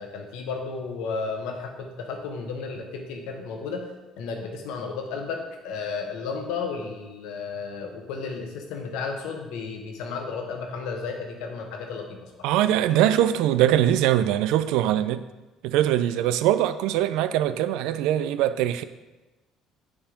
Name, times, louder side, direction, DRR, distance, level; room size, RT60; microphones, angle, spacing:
voice 1, 0.0-3.9 4.2-12.9, left 4 dB, 85° left, 1.1 m, -33 dB
voice 2, 12.4-15.2 15.6-18.8, right 12 dB, 85° right, 0.3 m, -22 dB
7.1 x 3.6 x 5.1 m
supercardioid pair, 90°, 0 cm